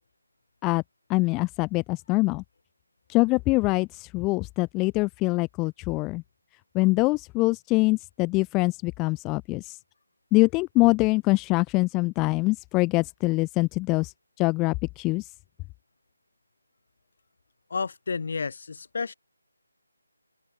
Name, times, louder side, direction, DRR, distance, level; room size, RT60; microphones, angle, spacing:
voice 1, 1.1-2.4 3.1-6.2 6.7-9.8 10.3-15.3, left 23 dB, 15° left, 0.3 m, -24 dB
voice 2, 17.7-19.1, left 5 dB, 55° left, 6.9 m, -31 dB
open air
figure-of-eight pair, 160°, 0 cm